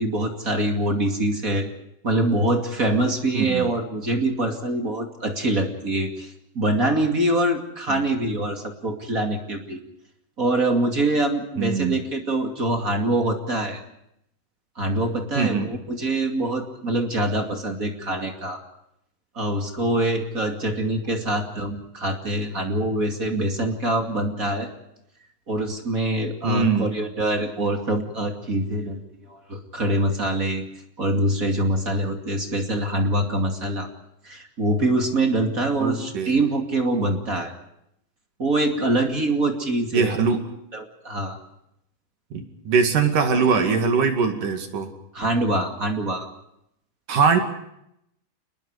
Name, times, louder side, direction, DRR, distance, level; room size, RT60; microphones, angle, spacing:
voice 1, 0.0-1.7 2.0-9.8 10.4-13.8 14.8-18.6 19.3-24.7 25.5-30.6 31.0-33.9 34.2-37.5 38.4-40.1 40.7-41.4 45.1-46.3, right 1 dB, 25° right, 4 dB, 1.9 m, -24 dB
voice 2, 3.3-3.7 11.6-12.0 15.4-15.7 26.4-26.9 35.8-36.3 39.9-40.4 42.3-44.9 47.1-47.4, right 5 dB, 55° right, 6 dB, 3.5 m, -22 dB
30.0 x 21.0 x 4.9 m, 0.77 s
omnidirectional pair, 5.1 m